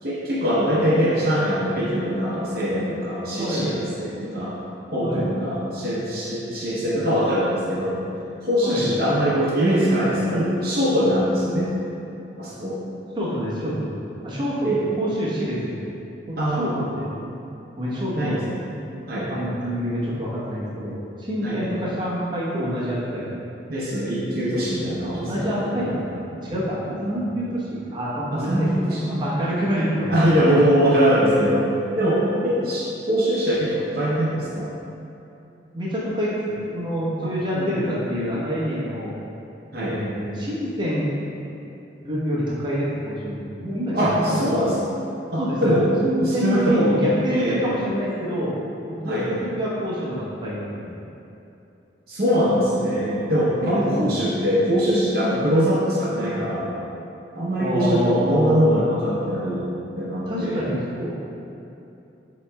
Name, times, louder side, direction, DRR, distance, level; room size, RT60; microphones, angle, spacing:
voice 1, 0.0-4.5 4.9-8.0 8.4-11.7 12.4-12.8 14.6-14.8 16.4-16.9 18.1-18.4 19.1-19.3 21.4-21.7 23.7-25.9 27.0-27.2 28.3-29.0 30.1-31.7 32.0-34.7 37.5-37.8 39.7-40.0 43.9-44.9 45.3-45.9 46.2-47.0 47.3-47.6 49.0-49.3 52.1-56.7 57.3-59.7 60.0-60.6, equal, 55° right, -8 dB, 0.7 m, -22 dB
voice 2, 3.4-3.7 5.0-5.3 8.6-8.9 13.2-14.0 14.2-14.7 15.0-15.8 16.3-16.7 17.0-17.1 17.8-18.4 19.3-23.3 25.0-26.8 27.1-30.2 35.7-39.1 39.7-41.1 42.0-44.7 45.4-45.8 46.0-48.5 48.9-51.0 53.6-54.1 57.6-58.8 60.3-61.1, equal, 25° right, -9 dB, 0.9 m, -27 dB
7.6 x 2.9 x 2.2 m, 2.8 s
head